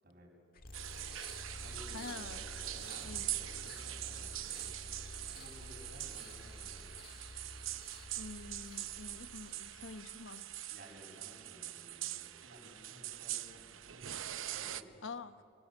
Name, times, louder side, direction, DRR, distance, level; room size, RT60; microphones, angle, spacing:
voice 1, 0.0-0.3 1.6-6.9 10.7-14.1 14.5-15.0, equal, 50° right, -1 dB, 7.5 m, -56 dB
sound 1, 0.5-10.5, left 2 dB, 50° left, 1.7 m, -51 dB
sound 2, 0.7-14.8, right 13 dB, 80° right, 0.8 m, -43 dB
voice 2, 1.9-2.4 3.0-3.3 8.2-10.6 15.0-15.4, left 4 dB, 75° left, 11 dB, 1.1 m, -47 dB
28.5 x 23.0 x 8.6 m, 2.5 s
head